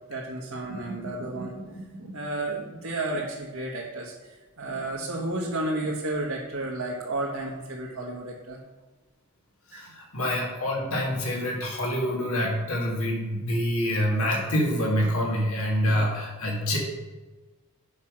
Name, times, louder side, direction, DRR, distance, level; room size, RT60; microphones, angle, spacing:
voice 1, 0.1-4.1 4.6-8.6 9.7-9.8 15.9-16.1, right 2 dB, 75° right, -4 dB, 1.5 m, -32 dB
voice 2, 9.7-16.8, equal, 75° left, -1 dB, 1.9 m, -26 dB
8.2 x 5.9 x 6.4 m, 1.3 s
head